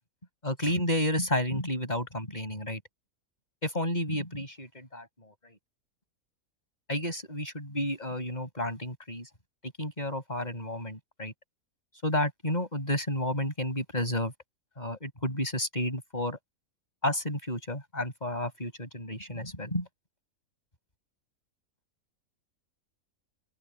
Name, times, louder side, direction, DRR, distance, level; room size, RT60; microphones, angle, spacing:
voice 1, 0.4-2.8 3.6-5.5 6.9-9.3 9.6-11.3 12.0-14.3 14.8-16.4 17.0-19.9, left 1 dB, 30° left, 7.7 m, -31 dB
open air
omnidirectional pair, 1.5 m